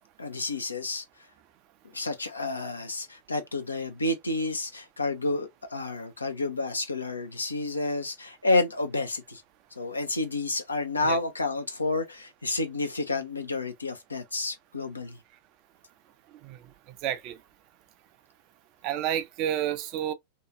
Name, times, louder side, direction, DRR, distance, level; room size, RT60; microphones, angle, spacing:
voice 1, 0.2-1.0 1.9-9.4 9.8-15.2, left 2 dB, 80° left, 0.6 m, -30 dB
voice 2, 17.0-17.4 18.8-20.1, right 11 dB, 40° right, 0.5 m, -30 dB
2.7 x 2.3 x 2.6 m
figure-of-eight pair, 90°, 0 cm